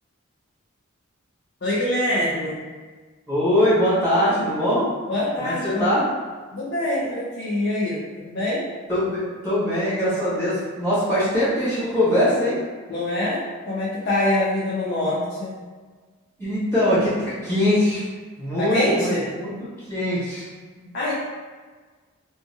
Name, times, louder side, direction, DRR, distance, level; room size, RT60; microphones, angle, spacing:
voice 1, 1.6-2.6 5.1-5.9 6.5-8.6 12.9-15.6 18.6-19.3 20.9-21.1, left 1 dB, 55° left, -7 dB, 0.5 m, -24 dB
voice 2, 3.3-4.8 5.4-6.0 8.9-12.6 16.4-18.0 18.4-19.5 19.9-20.4 20.8-20.9, left 1 dB, 10° left, -13 dB, 1.5 m, -22 dB
2.8 x 2.3 x 2.7 m, 1.4 s
head